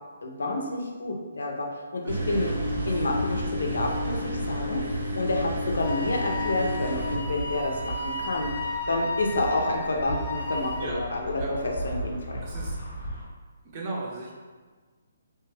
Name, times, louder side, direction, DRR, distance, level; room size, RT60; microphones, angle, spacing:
voice 1, 0.2-2.5 2.9-4.8 5.1-8.5 8.9-12.4, left 2 dB, 90° left, 1 dB, 0.6 m, -29 dB
voice 2, 2.0-2.4 5.2-5.5 10.8-11.0 11.4-11.5 12.4-12.8 13.7-14.3, right 2 dB, 25° right, -3 dB, 0.6 m, -37 dB
sound 1, 2.1-7.2, equal, 85° right, 0.7 m, -31 dB
sound 2, 2.3-13.2, equal, 15° left, 0.9 m, -37 dB
Wind instrument woodwind instrument, 5.8-10.9, left 2 dB, 50° left, 0.6 m, -34 dB
3.0 x 2.2 x 3.3 m, 1.4 s
hypercardioid pair, 170°, 0 cm